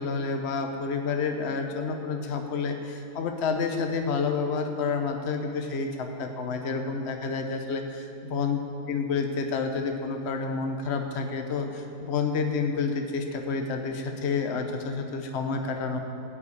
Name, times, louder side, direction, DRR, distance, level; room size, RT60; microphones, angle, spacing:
voice 1, 0.0-8.6 8.9-16.0, left 4 dB, 45° left, 4 dB, 1.2 m, -29 dB
14.0 x 7.4 x 8.7 m, 2.9 s
omnidirectional pair, 1.7 m